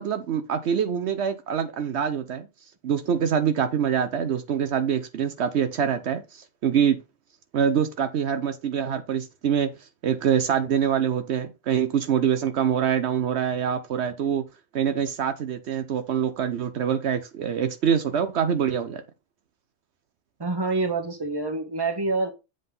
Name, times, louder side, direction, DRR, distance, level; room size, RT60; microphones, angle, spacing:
voice 1, 0.0-2.5 2.8-7.0 7.5-14.4 14.7-19.0, right 8 dB, 70° right, 1.0 m, -25 dB
voice 2, 20.4-22.3, right 3 dB, 20° right, 1.3 m, -26 dB
7.8 x 3.9 x 5.3 m
omnidirectional pair, 1.2 m